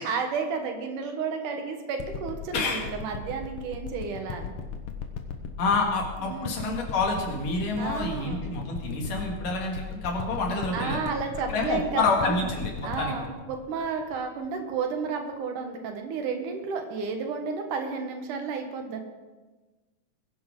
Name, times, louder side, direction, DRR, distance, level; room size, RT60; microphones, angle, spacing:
voice 1, 0.0-4.5 6.2-6.6 7.7-8.5 10.7-12.4 12.8-19.0, right 5 dB, 75° right, 4 dB, 2.8 m, -32 dB
sound 1, 2.0-14.7 15.3-15.4, left 6 dB, 60° left, 1.6 m, -37 dB
voice 2, 2.5-2.9 5.6-11.0 11.5-13.1, left 3 dB, 75° left, 0 dB, 3.8 m, -28 dB
21.5 x 11.0 x 3.8 m, 1.2 s
omnidirectional pair, 3.8 m